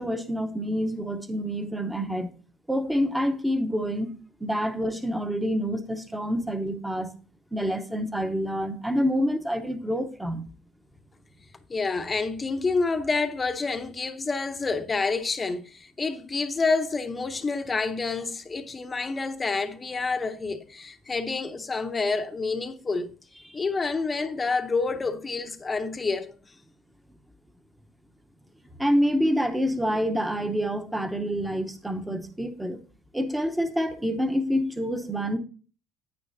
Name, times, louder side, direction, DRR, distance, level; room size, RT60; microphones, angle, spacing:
voice 1, 0.0-2.3 2.7-4.1 4.4-7.1 7.5-10.4 28.8-32.8 33.1-35.4, equal, 5° right, 0.9 m, -27 dB
voice 2, 11.7-23.1 23.5-26.5, left 4 dB, 20° left, 0.8 m, -28 dB
9.5 x 9.0 x 2.7 m
supercardioid pair, 105°, 0 cm